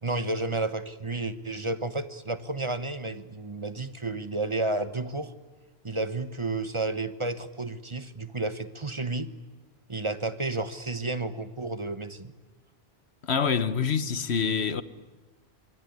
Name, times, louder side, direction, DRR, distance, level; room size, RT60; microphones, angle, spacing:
voice 1, 0.0-5.3 5.8-9.3 9.9-12.3, right 2 dB, 30° right, 1.2 m, -31 dB
voice 2, 13.2-14.8, left 6 dB, 80° left, 1.5 m, -26 dB
26.0 x 23.5 x 9.6 m
omnidirectional pair, 1.1 m